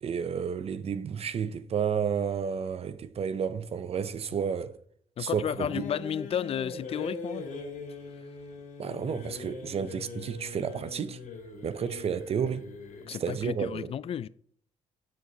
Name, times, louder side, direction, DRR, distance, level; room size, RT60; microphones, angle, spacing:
voice 1, 0.0-4.8 5.2-5.8 8.8-11.2 11.6-12.7 13.1-13.9, right 7 dB, 50° right, 0.6 m, -31 dB
voice 2, 5.2-7.4 13.1-14.3, left 9 dB, 45° left, 0.4 m, -32 dB
sound 1, 5.5-13.2, left 3 dB, 75° left, 2.4 m, -41 dB
7.6 x 6.3 x 3.9 m
supercardioid pair, 65°, 13 cm